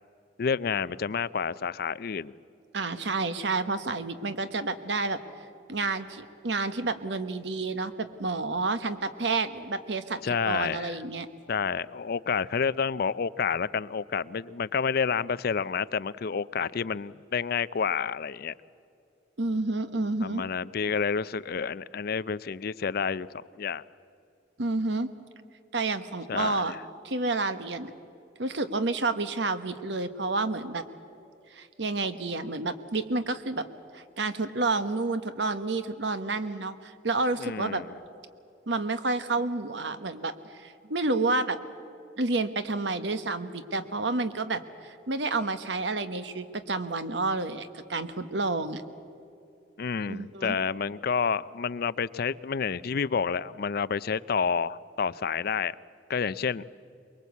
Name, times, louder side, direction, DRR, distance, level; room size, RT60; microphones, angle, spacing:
voice 1, 0.4-2.3 10.2-11.0 11.5-18.5 20.2-23.8 26.3-26.8 37.4-37.9 49.8-55.7 56.1-56.6, left 6 dB, 55° left, 18 dB, 0.5 m, -29 dB
voice 2, 2.7-5.2 5.7-11.3 19.4-20.4 24.6-25.1 25.7-26.7 27.0-27.9 28.4-30.8 31.5-33.7 33.9-37.8 38.7-41.6 42.2-48.8 50.1-50.6, right 3 dB, 70° right, 11 dB, 1.2 m, -30 dB
23.5 x 22.0 x 8.3 m, 2.6 s
head